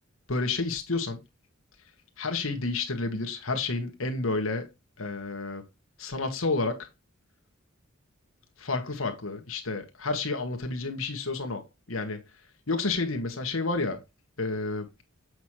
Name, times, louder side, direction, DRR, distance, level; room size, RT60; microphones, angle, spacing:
voice 1, 0.3-1.2 2.2-4.7 5.0-5.6 6.0-6.9 8.6-12.2 12.7-14.0 14.4-14.9, left 3 dB, 90° left, 1.8 m, -30 dB
8.2 x 6.2 x 3.2 m
head